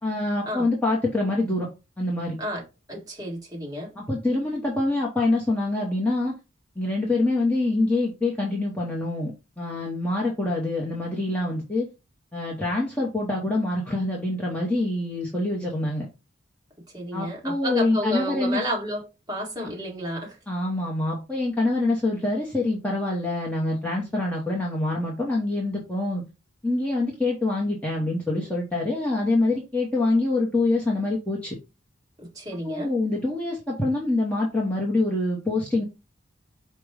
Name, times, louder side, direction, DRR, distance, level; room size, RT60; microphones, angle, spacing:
voice 1, 0.0-1.7 2.0-2.4 4.0-6.3 6.8-9.3 9.6-11.9 12.3-16.1 17.1-18.6 20.5-26.2 26.6-31.6 32.6-35.8, left 2 dB, 5° left, 0.9 m, -25 dB
voice 2, 2.4-3.9 16.9-19.0 19.3-20.4 32.2-32.9, equal, 20° right, 1.6 m, -31 dB
5.1 x 2.3 x 4.6 m
head